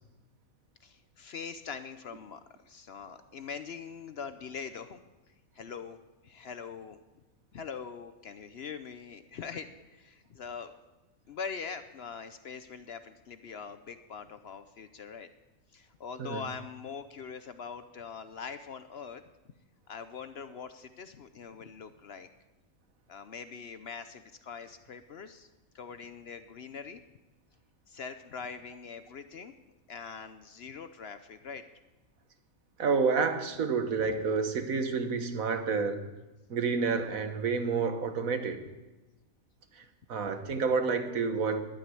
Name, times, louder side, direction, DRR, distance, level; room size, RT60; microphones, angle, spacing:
voice 1, 0.8-5.0 5.5-6.0 6.2-7.0 7.5-10.7 11.3-15.3 15.7-19.2 19.9-22.3 23.1-25.5 25.7-27.0 27.9-29.5 29.9-31.6, left 6 dB, 55° left, 10 dB, 0.8 m, -42 dB
voice 2, 32.8-36.1 36.5-38.6 39.7-41.6, right 5 dB, 75° right, 8 dB, 1.6 m, -29 dB
11.5 x 9.1 x 9.7 m, 1.1 s
omnidirectional pair, 1.5 m